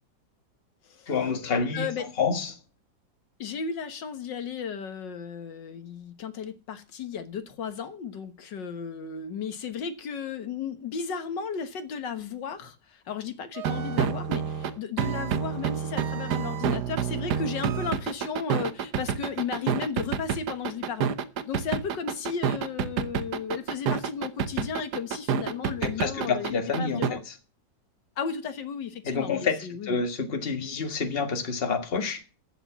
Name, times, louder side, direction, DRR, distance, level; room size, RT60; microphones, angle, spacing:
voice 1, 1.1-1.9 2.2-2.6 25.8-27.3 29.0-32.2, left 5 dB, 35° left, 1.8 m, -28 dB
voice 2, 1.7-2.1 3.4-21.1 21.5-27.2 28.2-30.0, left 6 dB, 80° left, 2.0 m, -34 dB
sound 1, 13.6-27.1, right 8 dB, 70° right, 1.4 m, -28 dB
14.5 x 7.1 x 7.2 m
omnidirectional pair, 1.9 m